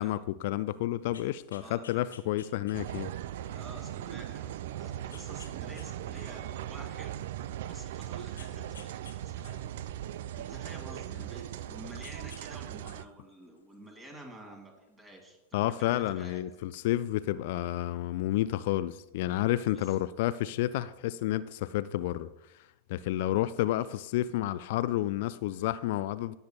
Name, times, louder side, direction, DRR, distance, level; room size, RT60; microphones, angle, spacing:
voice 1, 0.0-3.1 15.5-22.3 22.9-26.3, left 14 dB, 55° left, 0.3 m, -30 dB
sound 1, 1.0-3.3 3.8-3.9 5.1-5.9 6.1-7.5 8.4-9.2 9.4-11.6 12.0-12.4 12.7-14.2 15.2-15.3, left 6 dB, 75° left, 1.0 m, -54 dB
voice 2, 1.5-1.8 2.3-2.5 3.5-9.0 9.2-9.6 10.3-16.4 19.7-20.0, right 1 dB, 20° right, 2.5 m, -50 dB
sound 2, 2.7-13.0, right 12 dB, 60° right, 0.3 m, -39 dB
17.5 x 7.1 x 2.3 m
figure-of-eight pair, 90°, 0 cm